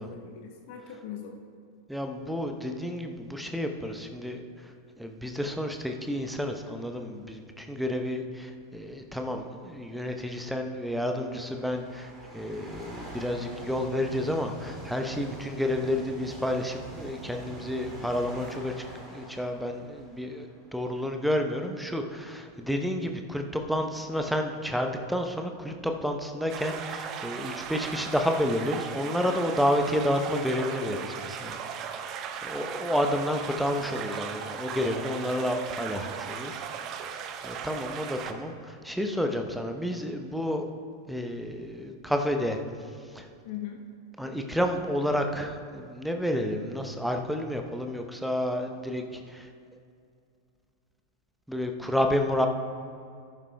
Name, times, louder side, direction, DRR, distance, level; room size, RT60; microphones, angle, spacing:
voice 1, 0.0-1.4 43.4-43.8, left 9 dB, 50° left, 2 dB, 1.0 m, -40 dB
voice 2, 1.9-4.4 5.0-18.7 19.1-31.6 31.9-32.0 32.4-37.1 37.4-40.7 41.1-42.6 43.1-43.3 44.2-49.5 51.5-52.5, equal, ahead, 4 dB, 0.8 m, -30 dB
sound 1, 10.2-21.6 22.2-22.3 23.2-23.3 23.5-25.0, right 2 dB, 20° right, 2.7 m, -46 dB
sound 2, 26.5-38.3, right 7 dB, 35° right, 0.6 m, -37 dB
14.0 x 11.0 x 2.3 m, 2.3 s
figure-of-eight pair, 90°, 0 cm